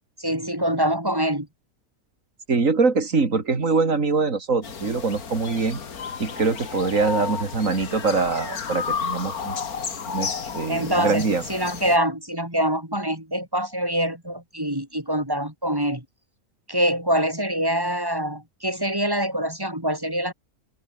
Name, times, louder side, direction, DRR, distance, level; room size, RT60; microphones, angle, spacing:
voice 1, 0.2-1.5 10.7-16.0 16.7-20.3, equal, 15° right, 3.6 m, -25 dB
voice 2, 2.5-5.8 6.2-9.5 10.1-11.4, right 4 dB, 60° right, 3.0 m, -23 dB
sound 1, 4.6-12.0, left 6 dB, 85° left, 2.3 m, -32 dB
omnidirectional pair, 1.5 m